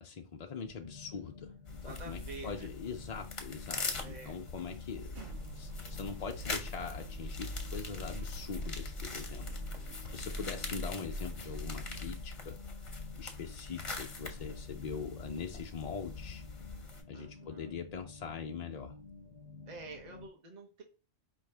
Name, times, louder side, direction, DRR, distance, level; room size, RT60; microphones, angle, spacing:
voice 1, 0.0-1.5 1.8-5.2 5.5-12.6 13.2-16.4 17.1-19.0, left 6 dB, 70° left, 0.3 m, -42 dB
sound 1, 0.6-20.3, left 4 dB, 85° left, 1.0 m, -52 dB
sound 2, 1.7-17.0, left 3 dB, 30° left, 0.7 m, -43 dB
voice 2, 1.8-2.7 3.9-4.4 9.4-10.0 17.1-17.8 19.7-20.8, right 3 dB, 35° right, 1.1 m, -49 dB
sound 3, 5.1-12.2, equal, 55° right, 0.6 m, -44 dB
4.8 x 3.1 x 3.3 m
omnidirectional pair, 1.3 m